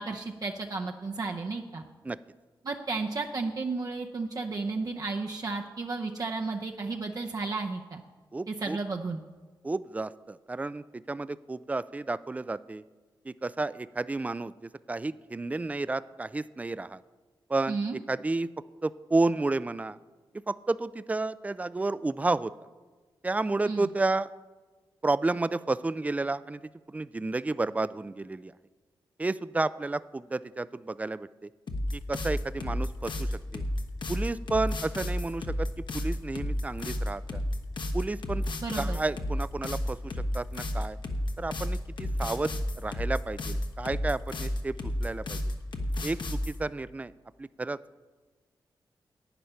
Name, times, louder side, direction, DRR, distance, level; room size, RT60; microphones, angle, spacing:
voice 1, 0.0-1.8 2.6-8.0 8.5-9.2 17.7-18.0 23.7-23.9 38.6-39.0, right 3 dB, 45° right, 2 dB, 0.7 m, -33 dB
voice 2, 8.3-8.8 9.6-12.8 13.3-17.0 17.5-17.8 18.1-18.5 18.8-20.0 20.5-22.5 23.2-24.3 25.0-26.6 26.9-28.5 29.2-31.5 31.9-33.6 34.1-35.7 35.9-37.4 37.9-38.4 38.8-41.0 41.4-42.5 42.8-45.4 46.0-47.1 47.4-47.8, right 3 dB, 15° right, 17 dB, 0.3 m, -31 dB
sound 1, 31.7-46.6, left 1 dB, 60° left, 1.2 m, -31 dB
11.0 x 9.2 x 5.7 m, 1.3 s
cardioid pair, 80°, 9 cm